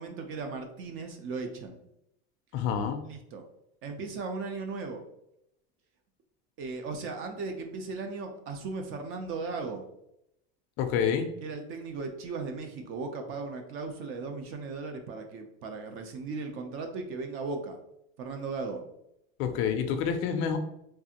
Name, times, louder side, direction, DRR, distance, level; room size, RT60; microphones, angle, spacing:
voice 1, 0.0-1.8 3.0-3.4 3.8-5.0 6.6-9.8 11.4-17.8 18.2-18.8, right 4 dB, 40° right, 5 dB, 0.5 m, -37 dB
voice 2, 2.5-3.0 10.8-11.3 19.4-20.6, left 7 dB, 45° left, 6 dB, 0.4 m, -28 dB
3.3 x 2.4 x 2.8 m, 0.79 s
supercardioid pair, 135°, 31 cm